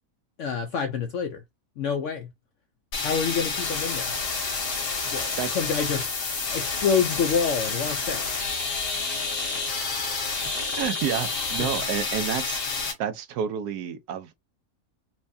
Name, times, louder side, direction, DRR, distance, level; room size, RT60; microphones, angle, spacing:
voice 1, 0.4-1.4 1.8-2.3 3.0-4.1 5.1-6.1 6.5-8.3 11.6-11.7, left 6 dB, 70° left, 0.7 m, -27 dB
funky static, 2.9-12.9, left 4 dB, 90° left, 1.9 m, -29 dB
voice 2, 10.6-12.6 13.0-14.3, right 8 dB, 75° right, 1.2 m, -29 dB
4.4 x 2.2 x 2.6 m
omnidirectional pair, 1.7 m